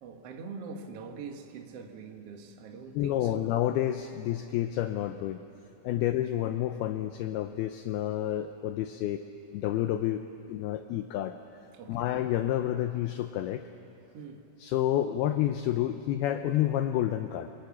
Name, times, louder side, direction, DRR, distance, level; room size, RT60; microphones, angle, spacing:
voice 1, 0.0-3.4 5.9-6.1 11.7-12.1 14.1-14.5, right 5 dB, 65° right, 1.5 m, -43 dB
voice 2, 2.9-5.4 5.8-9.2 9.5-11.4 11.9-13.7 14.6-17.5, left 12 dB, 90° left, 2.2 m, -29 dB
28.5 x 23.0 x 7.2 m
omnidirectional pair, 5.3 m